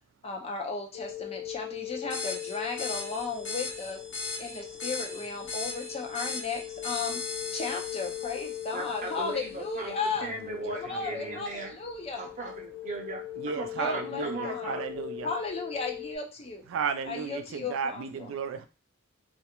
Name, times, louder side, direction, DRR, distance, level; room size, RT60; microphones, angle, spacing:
voice 1, 0.2-4.0 4.4-7.2 7.5-10.3 10.7-12.2 13.8-14.8 15.2-16.7 17.1-18.3, left 4 dB, 30° left, 0.5 m, -35 dB
sound 1, 0.9-16.2, left 13 dB, 85° left, 0.6 m, -40 dB
sound 2, 2.1-9.3, left 4 dB, 65° left, 1.0 m, -38 dB
voice 2, 8.7-11.7 12.2-15.0, right 2 dB, 40° right, 0.7 m, -38 dB
voice 3, 10.9-11.4 13.4-15.3 16.7-18.7, right 6 dB, 90° right, 0.3 m, -34 dB
2.4 x 2.1 x 2.8 m
head